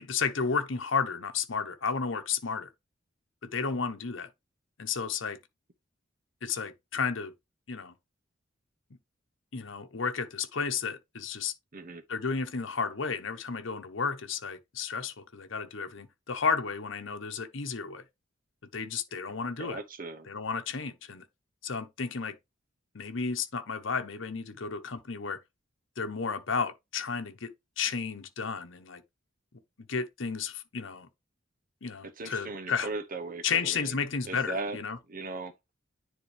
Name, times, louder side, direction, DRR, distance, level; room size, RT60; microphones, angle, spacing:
voice 1, 0.0-2.7 3.4-4.3 4.8-5.4 6.4-7.3 7.7-7.9 9.5-11.5 12.1-18.0 18.7-19.8 20.3-21.2 21.6-22.4 22.9-25.4 26.0-27.5 27.8-29.0 29.9-31.1 31.8-32.9 33.4-35.0, left 5 dB, 70° left, 1.0 m, -32 dB
voice 2, 11.7-12.0 19.6-20.3 32.0-34.0 34.3-34.8 35.1-35.5, right 3 dB, 45° right, 0.9 m, -38 dB
9.8 x 3.9 x 3.2 m
head